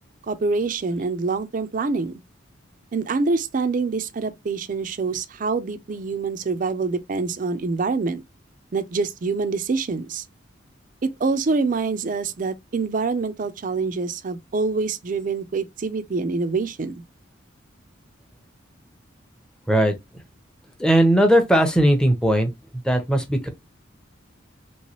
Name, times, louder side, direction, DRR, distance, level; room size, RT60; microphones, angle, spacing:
voice 1, 0.3-2.1 2.9-8.2 8.7-10.2 11.0-17.0, right 4 dB, 40° right, 0.4 m, -25 dB
voice 2, 20.8-22.5 22.8-23.5, right 1 dB, 5° left, 0.6 m, -18 dB
3.0 x 3.0 x 2.9 m
head